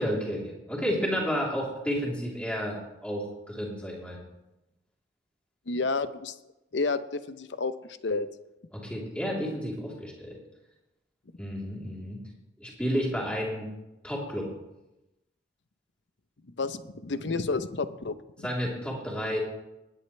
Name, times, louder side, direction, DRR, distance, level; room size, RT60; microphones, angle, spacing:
voice 1, 0.0-4.2 8.7-10.4 11.4-12.2 12.6-13.7 14.0-14.5 18.4-19.4, equal, 5° left, -4 dB, 3.4 m, -31 dB
voice 2, 5.7-6.3 6.7-7.7 8.0-8.3 16.6-18.5, left 3 dB, 80° left, 12 dB, 0.7 m, -30 dB
19.5 x 10.0 x 3.3 m, 0.96 s
head